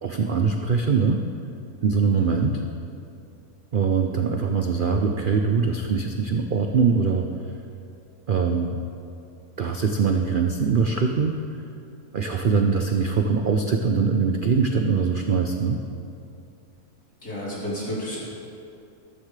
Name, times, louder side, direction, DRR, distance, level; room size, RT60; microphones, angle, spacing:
voice 1, 0.0-1.2 1.8-2.6 3.7-7.3 8.3-8.8 9.6-11.4 12.1-15.8, right 5 dB, 70° right, 4 dB, 0.4 m, -22 dB
voice 2, 17.2-18.2, left 1 dB, 70° left, -8 dB, 4.1 m, -31 dB
14.0 x 13.0 x 3.3 m, 2.6 s
omnidirectional pair, 1.7 m